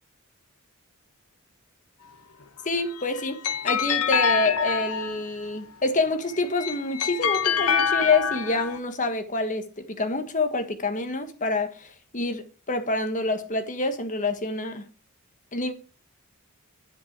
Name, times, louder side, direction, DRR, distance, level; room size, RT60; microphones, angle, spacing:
voice 1, 2.6-3.4 3.6-14.8 15.5-15.7, left 3 dB, 35° left, 1.5 m, -27 dB
sound 1, 2.7-5.4 6.3-8.8, left 7 dB, 80° left, 1.0 m, -26 dB
10.5 x 9.2 x 4.6 m
head